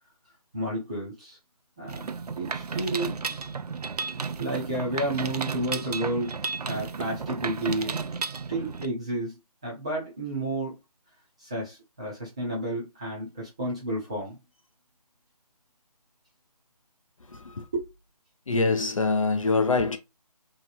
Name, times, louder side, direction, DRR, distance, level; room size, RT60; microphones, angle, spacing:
voice 1, 0.5-1.4 1.8-2.1 2.3-3.3 4.4-8.0 8.5-9.4 9.6-10.8 11.4-14.4 17.7-17.9, right 1 dB, 10° right, 0.6 m, -31 dB
Mechanisms, 1.9-8.9, right 5 dB, 70° right, 0.5 m, -33 dB
voice 2, 17.3-17.6 18.5-20.0, left 3 dB, 55° left, 0.6 m, -24 dB
2.9 x 2.8 x 2.6 m
figure-of-eight pair, 165°, 20 cm